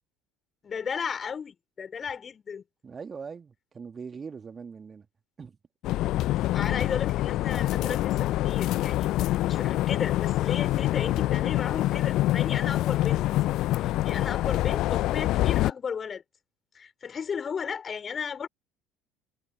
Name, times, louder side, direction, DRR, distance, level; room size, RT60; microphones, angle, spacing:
voice 1, 0.6-2.6 6.5-13.2 13.8-16.2 16.7-18.5, left 6 dB, 30° left, 4.1 m, -34 dB
voice 2, 2.8-5.1 5.4-5.6, right 5 dB, 30° right, 2.6 m, -41 dB
sound 1, 5.8-15.7, left 15 dB, 50° left, 0.7 m, -26 dB
figure-of-eight pair, 60°, 0 cm